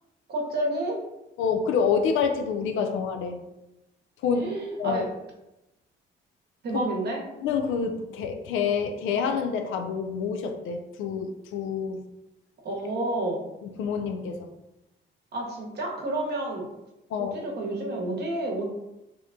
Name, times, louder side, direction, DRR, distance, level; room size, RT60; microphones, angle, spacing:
voice 1, 0.3-1.0 4.3-5.1 6.6-7.2 12.6-13.4 15.3-16.7 17.2-18.6, right 1 dB, 55° right, -1 dB, 0.9 m, -30 dB
voice 2, 1.4-3.4 4.2-4.5 4.8-5.0 6.7-6.8 7.4-12.0 13.8-14.5 17.1-17.4, left 6 dB, 80° left, 6 dB, 0.4 m, -27 dB
2.8 x 2.2 x 3.6 m, 0.92 s
cardioid pair, 90°, 20 cm